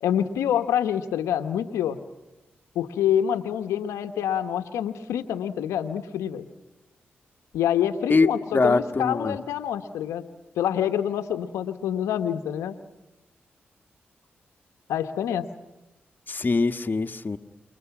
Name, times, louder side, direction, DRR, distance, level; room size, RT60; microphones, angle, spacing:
voice 1, 0.0-2.0 2.7-6.5 7.5-10.3 10.6-12.8 14.9-15.5, left 10 dB, 85° left, 8 dB, 1.1 m, -26 dB
voice 2, 8.5-9.4 16.3-17.4, left 3 dB, 40° left, 7 dB, 1.5 m, -22 dB
29.0 x 23.0 x 6.0 m, 1.0 s
supercardioid pair, 45°, 5 cm